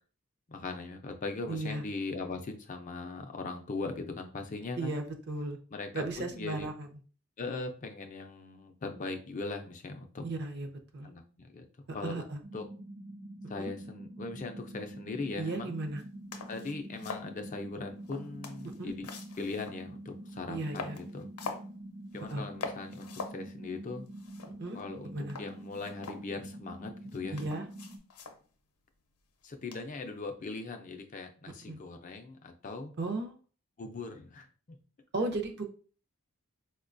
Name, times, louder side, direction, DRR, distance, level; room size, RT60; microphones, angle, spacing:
voice 1, 0.5-4.9 5.7-6.7 7.4-10.2 11.0-11.7 11.9-12.7 13.5-15.7 16.5-19.1 19.4-21.3 22.1-24.1 24.7-27.4 29.4-32.9 33.8-34.8 35.2-35.5, left 3 dB, 35° left, 5 dB, 0.4 m, -40 dB
voice 2, 1.5-1.8 4.8-5.6 5.9-6.9 10.2-10.7 10.9-11.1 12.0-12.4 13.6-13.7 15.4-16.0 18.8-18.9 20.5-21.0 22.3-22.4 24.6-24.8 25.1-25.4 27.3-27.6 31.6-31.8 33.0-33.3 35.1-35.6, right 2 dB, 50° right, 5 dB, 0.5 m, -35 dB
sound 1, 12.4-28.0, right 1 dB, 85° right, 0.8 m, -46 dB
sound 2, 16.0-16.1 16.3-17.3 18.0-19.9 20.3-20.4 20.7-21.7 22.1-22.3 22.6-23.4 23.7-23.8 24.1-24.9 25.3-26.6 27.1-28.4 29.7-30.0, left 4 dB, 80° left, 0.6 m, -43 dB
4.5 x 2.2 x 2.5 m, 0.39 s
head